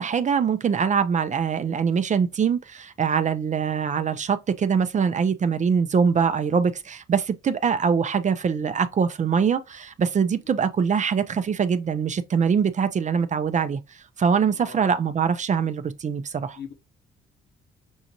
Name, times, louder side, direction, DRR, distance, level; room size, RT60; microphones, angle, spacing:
voice 1, 0.0-16.6, right 6 dB, 40° right, 0.5 m, -23 dB
voice 2, 14.5-14.9 16.5-16.7, left 6 dB, 55° left, 1.0 m, -41 dB
6.2 x 2.6 x 2.8 m
cardioid pair, 90°, 20 cm